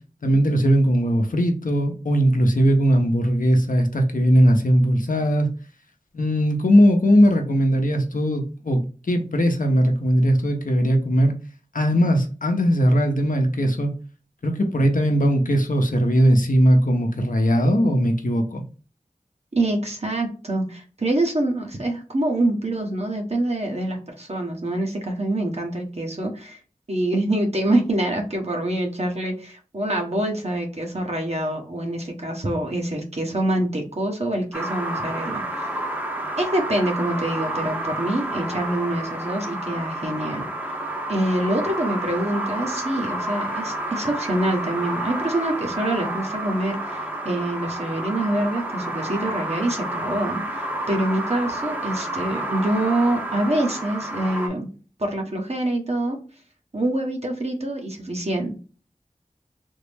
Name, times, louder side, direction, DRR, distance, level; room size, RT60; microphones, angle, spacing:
voice 1, 0.2-5.5 6.1-11.3 11.7-13.9 14.4-18.6, equal, 75° left, 4 dB, 0.7 m, -19 dB
voice 2, 19.5-26.6 26.9-35.7 36.4-40.5 41.1-54.7 55.0-56.2 56.7-58.6, right 1 dB, 50° right, 1 dB, 1.0 m, -25 dB
sound 1, 34.5-54.5, right 1 dB, 15° right, 0.7 m, -30 dB
3.6 x 2.0 x 3.4 m, 0.36 s
wide cardioid pair, 40°, 14 cm